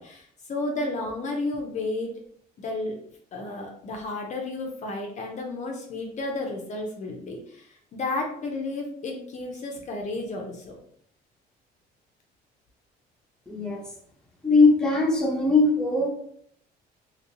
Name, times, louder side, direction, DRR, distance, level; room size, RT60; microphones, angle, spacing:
voice 1, 0.0-2.1 2.6-3.0 3.3-10.8, left 2 dB, 45° left, 1 dB, 0.6 m, -32 dB
voice 2, 13.5-13.8 14.4-16.1, left 3 dB, 5° left, -2 dB, 0.8 m, -20 dB
2.9 x 2.7 x 2.9 m, 0.64 s
cardioid pair, 110°, 17 cm